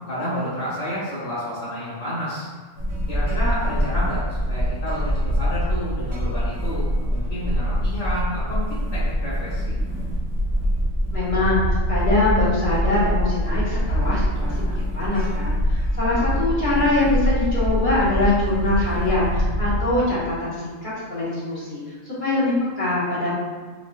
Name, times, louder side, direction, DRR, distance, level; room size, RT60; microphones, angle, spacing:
voice 1, 0.1-2.5 3.1-9.7 16.1-16.4, equal, 65° left, -11 dB, 1.7 m, -30 dB
sound 1, 2.8-20.1, equal, 40° right, 1.2 m, -24 dB
voice 2, 11.1-23.3, left 2 dB, 40° left, -11 dB, 1.8 m, -23 dB
4.4 x 4.0 x 2.5 m, 1.4 s
omnidirectional pair, 1.3 m